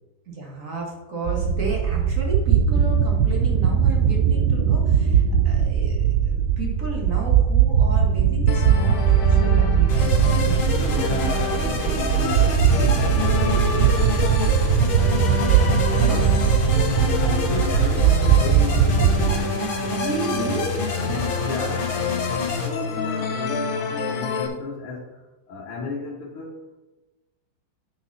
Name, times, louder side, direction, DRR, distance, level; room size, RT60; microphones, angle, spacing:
voice 1, 0.3-10.9 11.6-12.4 12.6-12.8 16.0-16.4 19.5-21.3, right 2 dB, 40° right, -1 dB, 2.2 m, -33 dB
sound 1, 1.3-19.4, right 8 dB, 70° right, 1.1 m, -20 dB
sound 2, 8.5-24.5, left 3 dB, 55° left, 1.1 m, -29 dB
sound 3, 9.9-22.7, left 3 dB, 75° left, 2.5 m, -29 dB
voice 2, 10.7-14.4 17.2-19.6 21.4-22.0 22.4-26.8, left 4 dB, 90° left, -5 dB, 2.1 m, -34 dB
9.4 x 6.1 x 4.2 m, 1.1 s
omnidirectional pair, 2.3 m